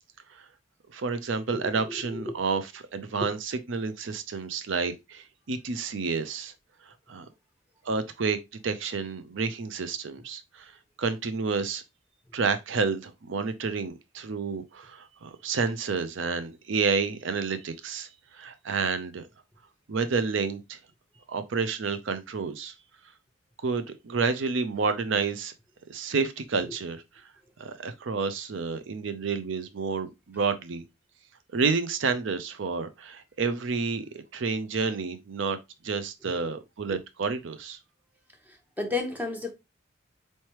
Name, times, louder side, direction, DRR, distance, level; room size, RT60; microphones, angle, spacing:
voice 1, 0.9-6.5 6.9-7.3 7.8-10.7 11.0-11.8 12.3-19.3 19.9-20.8 21.3-22.7 23.6-25.5 25.9-27.0 27.6-30.8 31.5-35.6 35.8-37.8, right 4 dB, 70° right, 0.5 m, -30 dB
voice 2, 1.5-2.4 3.2-3.3 36.3-36.5 36.9-37.0 38.5-39.5, left 3 dB, 10° right, 0.7 m, -33 dB
4.3 x 3.2 x 2.9 m
head